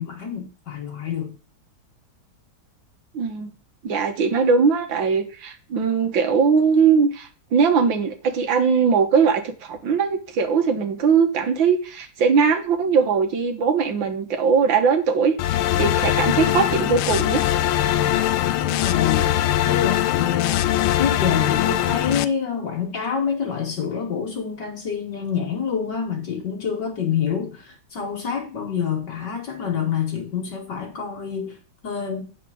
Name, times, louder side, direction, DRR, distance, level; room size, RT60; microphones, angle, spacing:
voice 1, 0.0-1.4 18.6-19.4 19.7-20.7 21.0-31.6 31.8-32.3, left 7 dB, 60° left, 1.9 m, -27 dB
voice 2, 3.1-3.5 3.8-17.4, right 5 dB, 70° right, 1.9 m, -20 dB
sound 1, 15.4-22.2, left 12 dB, 85° left, 1.4 m, -21 dB
8.7 x 4.2 x 6.3 m
omnidirectional pair, 2.2 m